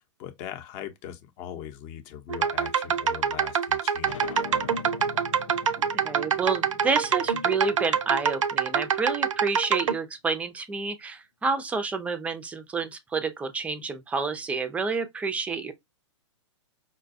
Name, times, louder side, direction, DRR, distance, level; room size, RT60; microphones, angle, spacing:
voice 1, 0.2-4.8, left 10 dB, 35° left, 0.7 m, -40 dB
sound 1, 2.3-9.9, right 7 dB, 85° right, 0.5 m, -25 dB
sound 2, 4.0-9.3, left 7 dB, 90° left, 0.6 m, -43 dB
voice 2, 5.8-15.7, right 4 dB, 10° right, 0.4 m, -29 dB
4.9 x 2.2 x 2.6 m
hypercardioid pair, 125°, 16 cm